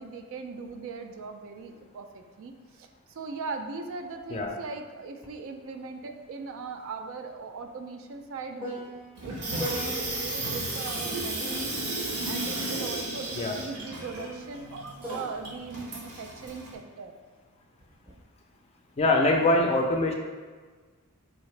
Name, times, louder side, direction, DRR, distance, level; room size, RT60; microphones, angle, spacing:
voice 1, 0.0-9.0 9.2-17.1, right 4 dB, 60° right, 6 dB, 0.3 m, -39 dB
sound 1, 5.2-5.4 5.7-10.5 11.4-16.9 17.8-18.2, equal, 10° right, 0.6 m, -43 dB
Water tap faucet / Sink (filling or washing), 9.2-16.7, right 2 dB, 85° right, 1.0 m, -34 dB
voice 2, 19.0-20.1, left 2 dB, 30° left, 3 dB, 0.3 m, -23 dB
4.0 x 2.7 x 3.2 m, 1.4 s
head